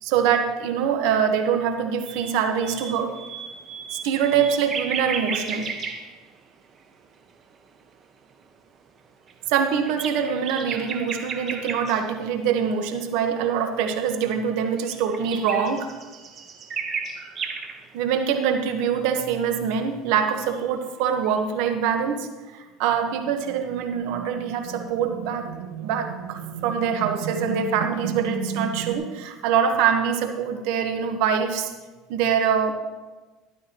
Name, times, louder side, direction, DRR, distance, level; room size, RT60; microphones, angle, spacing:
voice 1, 0.0-3.1 3.9-5.7 9.5-15.9 17.9-31.7 32.1-32.7, right 7 dB, 70° right, 6 dB, 1.3 m, -24 dB
sound 1, 2.1-6.8 7.2-7.6 8.4-8.5 9.3-12.1 14.3-17.9 21.2-21.4, right 5 dB, 40° right, 1.3 m, -34 dB
sound 2, 23.1-29.0, right 7 dB, 90° right, 1.1 m, -34 dB
14.0 x 11.5 x 3.0 m, 1.2 s
supercardioid pair, 105°, 0 cm